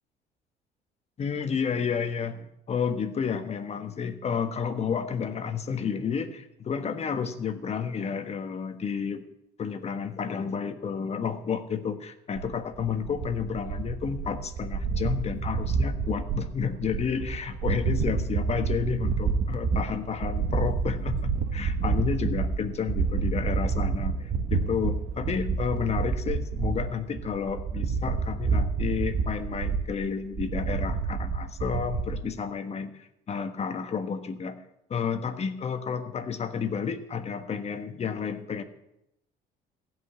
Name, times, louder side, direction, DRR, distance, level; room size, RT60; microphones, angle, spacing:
voice 1, 1.2-9.2 9.6-34.6 34.9-38.6, left 6 dB, 40° left, 9 dB, 1.4 m, -31 dB
sound 1, 12.4-32.2, right 5 dB, 55° right, 1.5 m, -29 dB
15.5 x 5.5 x 9.9 m, 0.84 s
cardioid pair, 110°, 17 cm